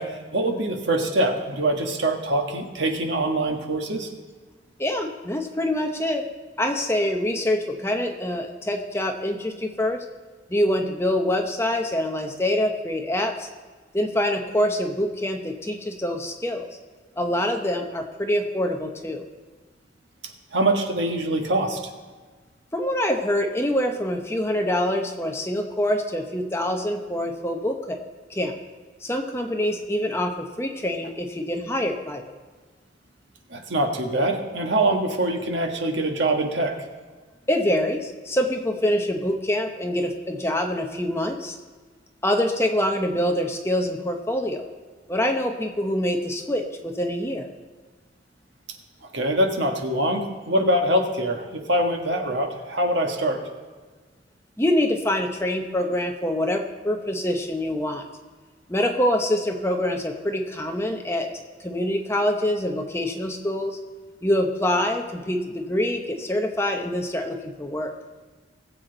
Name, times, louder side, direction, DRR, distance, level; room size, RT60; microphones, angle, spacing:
voice 1, 0.0-4.1 20.5-21.8 33.5-36.8 49.1-53.4, right 1 dB, 70° right, 3 dB, 1.4 m, -24 dB
voice 2, 4.8-6.3 6.6-10.0 10.5-13.5 13.9-16.7 17.2-19.3 22.7-28.0 28.3-28.5 29.0-32.2 37.5-41.5 42.2-44.6 45.1-47.4 54.6-58.1 58.7-61.3 61.6-63.8 64.2-67.9, left 1 dB, 15° left, 3 dB, 0.9 m, -25 dB
19.5 x 7.8 x 3.9 m, 1.4 s
head